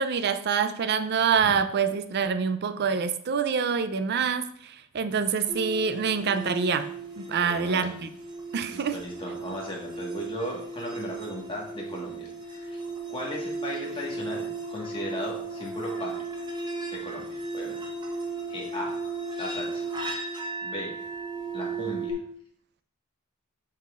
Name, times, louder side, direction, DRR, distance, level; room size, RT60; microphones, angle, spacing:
voice 1, 0.0-6.9 7.2-8.1 8.5-9.1, right 6 dB, 50° right, 11 dB, 0.4 m, -26 dB
sound 1, 5.5-22.1, right 3 dB, 20° right, 0.9 m, -35 dB
voice 2, 7.4-7.9 8.7-12.8 13.1-16.2 16.9-17.8 18.5-18.9 19.4-19.9 20.6-21.0 21.5-22.2, equal, 25° left, -2 dB, 1.5 m, -37 dB
7.4 x 5.7 x 2.4 m, 0.63 s
head